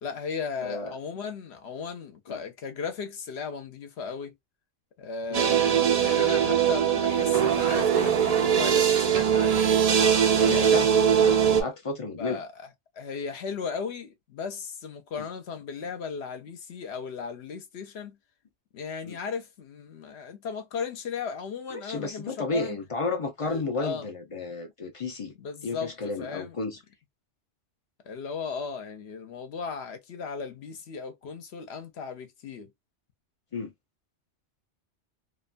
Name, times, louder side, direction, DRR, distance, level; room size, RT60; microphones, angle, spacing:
voice 1, 0.0-4.3 5.0-9.6 10.4-10.7 11.5-11.7 12.2-12.5 12.9-18.2 18.7-22.8 23.4-24.1 25.4-25.9 26.2-26.6 28.1-32.7, left 5 dB, 65° left, 0.9 m, -36 dB
voice 2, 0.6-1.0 2.3-2.4 5.3-5.4 10.3-12.4 15.2-15.3 19.0-19.2 21.7-25.3 25.6-26.8 33.5-33.7, left 3 dB, 40° left, 0.5 m, -32 dB
sound 1, 5.3-11.6, right 8 dB, 50° right, 0.4 m, -21 dB
2.6 x 2.1 x 2.4 m
omnidirectional pair, 1.2 m